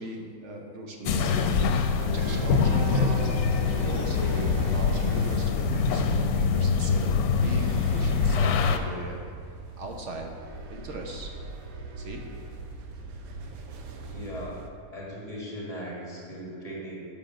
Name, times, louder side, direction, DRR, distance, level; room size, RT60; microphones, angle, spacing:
voice 1, 0.0-1.7 2.0-3.3 3.7-9.2 9.8-10.3 10.7-11.3 12.0-12.2, right 1 dB, 55° right, 2 dB, 1.2 m, -38 dB
sound 1, 1.1-8.8, left 5 dB, 85° left, 1.1 m, -24 dB
sound 2, 2.0-14.7, right 3 dB, 75° right, 1.1 m, -41 dB
voice 2, 14.1-14.6 14.9-17.1, equal, 25° left, -4 dB, 1.9 m, -38 dB
7.2 x 5.3 x 6.0 m, 2.3 s
omnidirectional pair, 1.6 m